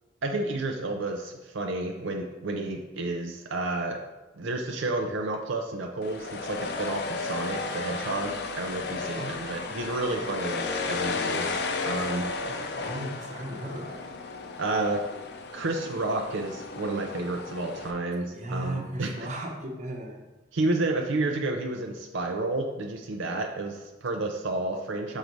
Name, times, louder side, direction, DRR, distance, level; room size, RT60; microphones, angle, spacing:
voice 1, 0.2-4.0 4.4-12.7 14.6-15.1 15.5-19.3 20.5-25.2, right 2 dB, 75° right, 2 dB, 0.6 m, -31 dB
sound 1, 6.0-17.9, left 4 dB, 55° left, 0.5 m, -34 dB
voice 2, 12.5-14.1 17.9-18.0 18.3-20.2, right 1 dB, 35° right, 0 dB, 1.0 m, -36 dB
6.4 x 4.0 x 4.6 m, 1.1 s
head